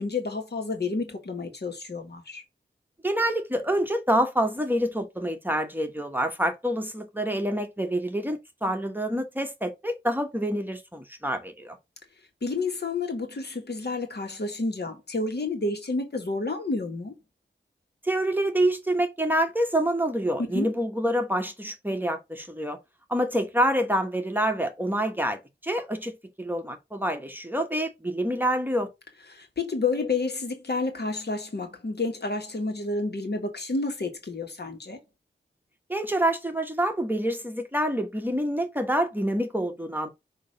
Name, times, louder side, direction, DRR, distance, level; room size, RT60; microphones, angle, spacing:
voice 1, 0.0-2.4 12.4-17.1 20.5-20.7 29.3-35.0, left 3 dB, 60° left, 1.6 m, -30 dB
voice 2, 3.0-11.8 18.0-22.8 23.1-28.9 35.9-40.1, right 1 dB, 10° right, 1.1 m, -27 dB
6.2 x 2.9 x 5.2 m
wide cardioid pair, 60°, 19 cm